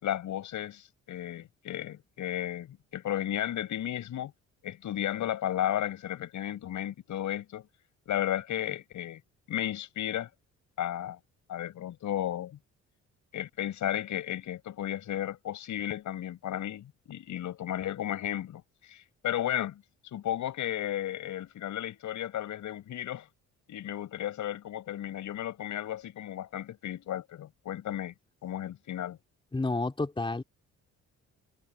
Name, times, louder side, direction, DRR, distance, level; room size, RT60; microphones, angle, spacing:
voice 1, 0.0-4.3 4.6-7.7 8.1-9.2 9.5-10.3 10.8-11.2 11.5-12.6 13.3-23.3 23.7-28.1 28.4-29.2, left 11 dB, 75° left, 7.2 m, -34 dB
voice 2, 29.5-30.4, left 3 dB, 15° left, 3.4 m, -30 dB
cardioid pair, 90°, 30 cm